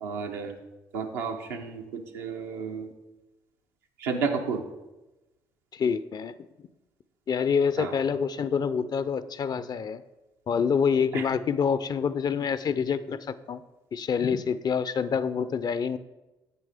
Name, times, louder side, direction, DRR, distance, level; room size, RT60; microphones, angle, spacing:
voice 1, 0.0-0.5 0.9-2.9 4.0-4.6 7.8-7.9 11.1-11.2, right 5 dB, 85° right, 2 dB, 0.8 m, -31 dB
voice 2, 5.7-6.3 7.3-10.0 10.5-13.6 13.9-16.0, left 6 dB, 45° left, 15 dB, 0.5 m, -27 dB
8.4 x 6.8 x 3.5 m, 1.0 s
hypercardioid pair, 50°, 10 cm